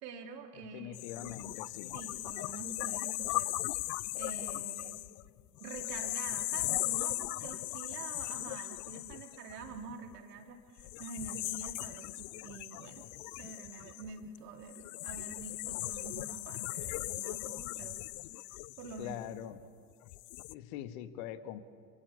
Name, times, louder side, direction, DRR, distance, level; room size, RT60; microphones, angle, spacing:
voice 1, 0.0-1.6 1.9-5.0 5.6-13.1 13.4-18.0 18.8-19.2, right 5 dB, 70° right, 3 dB, 3.2 m, -47 dB
voice 2, 0.7-2.0 19.0-19.6 20.5-21.6, left 11 dB, 55° left, 10 dB, 1.8 m, -43 dB
sound 1, 0.9-10.1 10.8-19.5 20.0-20.5, left 22 dB, 40° left, 0.6 m, -38 dB
27.5 x 27.0 x 7.2 m, 2.1 s
figure-of-eight pair, 75°, 49 cm